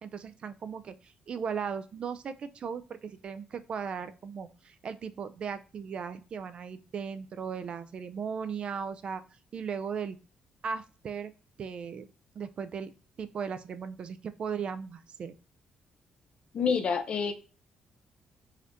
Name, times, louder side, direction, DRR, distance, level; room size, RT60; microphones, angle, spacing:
voice 1, 0.0-9.2 9.5-10.2 10.6-11.3 11.6-12.1 12.4-12.9 13.2-15.3, right 6 dB, 50° right, 0.4 m, -37 dB
voice 2, 16.5-17.3, left 6 dB, 50° left, 0.6 m, -27 dB
4.1 x 2.6 x 2.8 m
cardioid pair, 115°, 2 cm